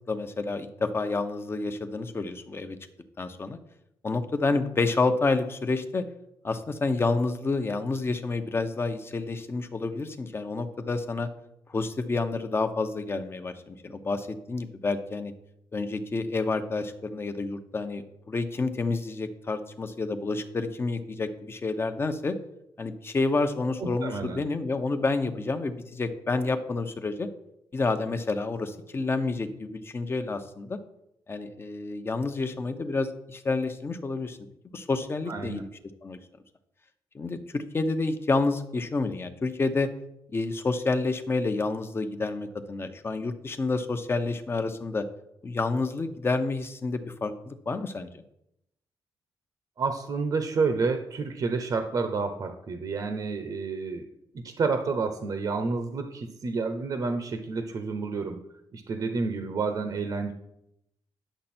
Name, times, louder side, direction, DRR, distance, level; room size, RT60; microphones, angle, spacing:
voice 1, 0.1-2.8 3.2-3.6 4.0-6.1 6.4-11.3 11.7-15.3 15.7-22.4 22.8-27.3 27.7-30.8 31.3-34.4 34.7-35.7 36.0-36.2 37.1-39.9 40.3-45.0 45.4-48.2, left 3 dB, 30° left, 9 dB, 0.9 m, -29 dB
voice 2, 23.8-24.4 35.3-35.6 49.8-54.1 54.3-58.4 58.7-60.3, right 4 dB, 50° right, 7 dB, 0.8 m, -29 dB
10.0 x 6.6 x 4.4 m, 0.81 s
cardioid pair, 110°, 8 cm